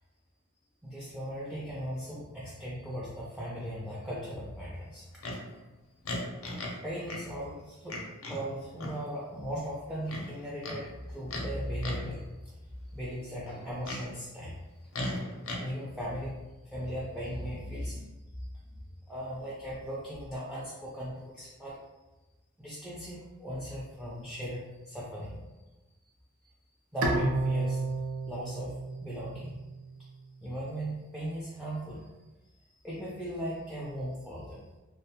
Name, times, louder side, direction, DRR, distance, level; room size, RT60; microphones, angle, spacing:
voice 1, 0.8-5.3 6.8-8.0 8.3-12.5 12.9-14.6 15.6-16.4 16.6-18.5 19.1-21.8 22.6-25.4 26.9-27.8 28.2-29.5 30.4-32.1 32.8-34.7, equal, 5° right, -6 dB, 0.3 m, -38 dB
Livestock farm animals working animals, 5.2-5.4 6.1-6.8 7.1-7.2 7.9-8.4 8.8-9.0 10.1-10.8 11.3-11.5 11.8-12.1 13.5-14.0 14.9-15.6, left 1 dB, 70° left, 0.5 m, -36 dB
Bowed string instrument, 27.0-30.2, right 2 dB, 75° right, 0.4 m, -32 dB
2.3 x 2.2 x 2.8 m, 1.1 s
head